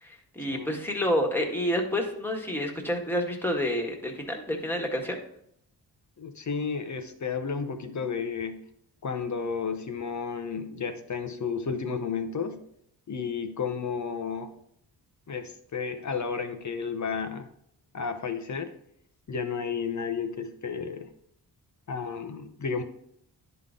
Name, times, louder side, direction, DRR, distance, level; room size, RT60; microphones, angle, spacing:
voice 1, 0.0-5.2, equal, 5° left, 1 dB, 1.6 m, -29 dB
voice 2, 6.2-8.6 9.0-12.6 13.1-14.5 15.3-17.5 17.9-18.7 19.3-21.1 21.9-22.8, left 5 dB, 45° left, 8 dB, 0.9 m, -32 dB
10.5 x 3.9 x 3.8 m, 0.71 s
cardioid pair, 65°, 42 cm